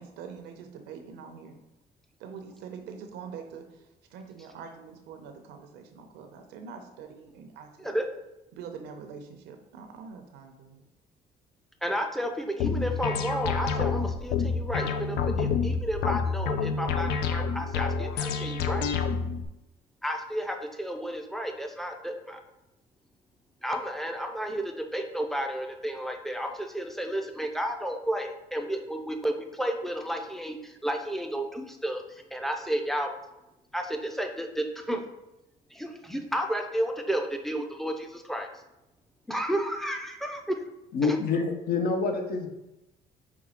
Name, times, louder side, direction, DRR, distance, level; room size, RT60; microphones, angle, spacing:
voice 1, 0.0-1.6 2.2-8.0 8.5-10.8, right 6 dB, 90° right, 5 dB, 0.7 m, -44 dB
voice 2, 11.8-18.9 20.0-22.4 23.6-33.1 33.7-35.0 35.7-38.5 39.3-40.6 41.0-41.2, equal, ahead, 4 dB, 0.5 m, -32 dB
sound 1, 12.6-19.4, left 5 dB, 85° left, 0.4 m, -28 dB
voice 3, 40.9-42.5, left 4 dB, 65° left, 4 dB, 0.8 m, -27 dB
5.2 x 2.4 x 4.2 m, 0.93 s
cardioid pair, 110°, 17 cm